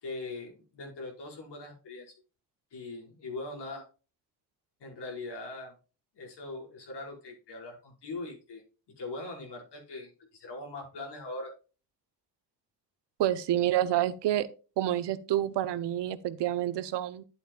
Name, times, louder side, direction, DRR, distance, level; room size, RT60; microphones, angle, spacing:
voice 1, 0.0-2.1 2.7-3.9 4.8-5.7 6.2-8.6 9.0-11.5, left 2 dB, 75° left, 5.4 m, -41 dB
voice 2, 13.2-14.5 14.8-17.2, right 12 dB, 80° right, 1.0 m, -28 dB
11.0 x 9.1 x 2.4 m
cardioid pair, 75°, 41 cm